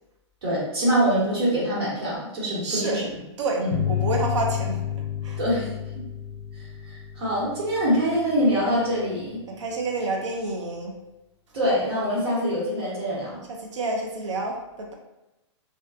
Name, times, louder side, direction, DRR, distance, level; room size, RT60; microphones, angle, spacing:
voice 1, 0.4-3.0 3.6-3.7 5.4-5.8 6.6-9.4 11.5-13.4, equal, 55° right, -6 dB, 1.4 m, -24 dB
voice 2, 2.6-3.0 3.4-4.8 5.2-5.4 9.5-10.9 13.6-14.9, right 2 dB, 90° right, 0 dB, 0.6 m, -28 dB
sound 1, 3.7-8.8, left 10 dB, 70° left, 0.4 m, -31 dB
2.4 x 2.4 x 2.3 m, 0.98 s
hypercardioid pair, 160°, 15 cm